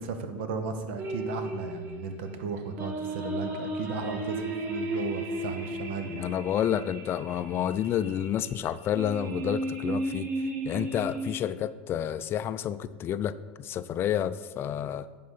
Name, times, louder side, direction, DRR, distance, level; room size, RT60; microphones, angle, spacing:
voice 1, 0.0-6.3, right 4 dB, 75° right, 8 dB, 0.9 m, -35 dB
sound 1, 1.0-11.4, right 1 dB, 35° right, 1.5 m, -34 dB
voice 2, 6.1-10.3 10.6-15.1, left 10 dB, 40° left, 14 dB, 0.4 m, -30 dB
10.5 x 3.9 x 5.7 m, 1.4 s
hypercardioid pair, 100°, 6 cm